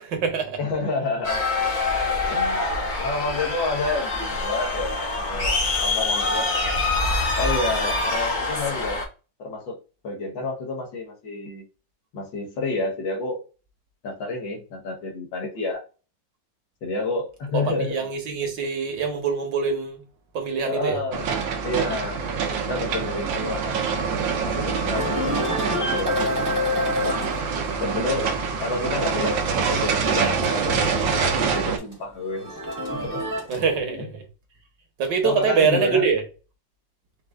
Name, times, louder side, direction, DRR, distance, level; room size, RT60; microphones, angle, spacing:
voice 1, 0.0-0.6 17.5-20.0 20.3-21.0 33.5-34.2 35.0-36.2, right 5 dB, 70° right, 1.7 m, -24 dB
voice 2, 0.6-1.5 2.3-2.7 3.0-5.5 5.8-6.5 7.4-9.0 9.4-9.8 10.0-11.7 12.1-13.4 14.0-15.8 16.8-18.1 20.7-21.3 21.6-22.3 22.6-23.9 24.4-26.4 27.0-27.2 27.8-30.8 31.1-32.5 32.9-34.1 35.2-36.0, left 3 dB, 80° left, 2.0 m, -29 dB
sound 1, 1.2-9.1, left 3 dB, 35° left, 0.8 m, -25 dB
sound 2, 21.1-31.8, right 5 dB, 85° right, 1.6 m, -25 dB
sound 3, 24.9-31.2 31.5-33.7, left 1 dB, 15° right, 0.9 m, -30 dB
5.3 x 2.5 x 3.5 m
omnidirectional pair, 2.0 m